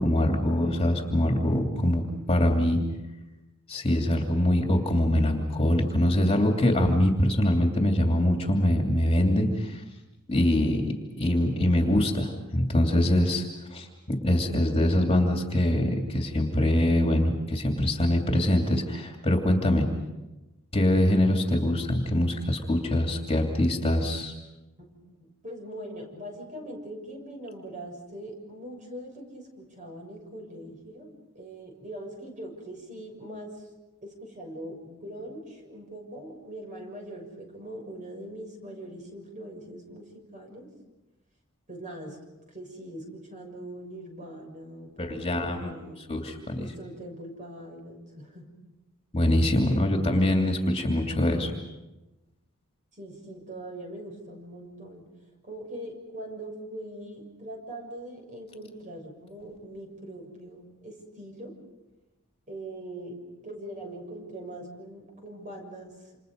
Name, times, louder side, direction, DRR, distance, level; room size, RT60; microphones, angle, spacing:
voice 1, 0.0-2.8 3.7-9.8 10.3-13.4 13.7-19.9 20.7-24.3 45.0-45.7 46.1-46.6 49.1-51.5, left 1 dB, 25° left, 3 dB, 2.7 m, -24 dB
voice 2, 24.8-33.6 34.0-40.7 41.7-42.2 42.5-46.1 46.6-48.5 49.7-49.8 52.9-55.1 55.4-61.5 62.5-63.2 63.4-66.1, right 1 dB, 35° right, 2 dB, 6.8 m, -42 dB
28.5 x 28.0 x 5.3 m, 1.0 s
head